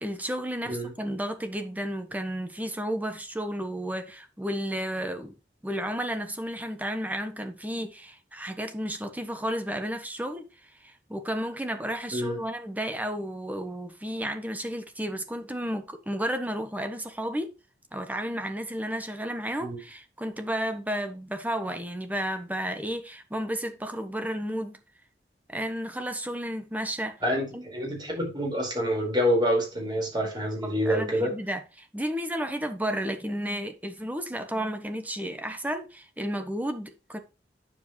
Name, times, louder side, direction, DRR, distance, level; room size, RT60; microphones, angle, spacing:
voice 1, 0.0-5.3 5.6-10.4 10.8-17.5 17.9-24.8 25.5-27.2 27.5-27.7 30.6-37.2, equal, 10° right, 1.2 m, -32 dB
voice 2, 27.2-31.4, equal, 25° right, 4.7 m, -27 dB
9.2 x 7.4 x 3.2 m
head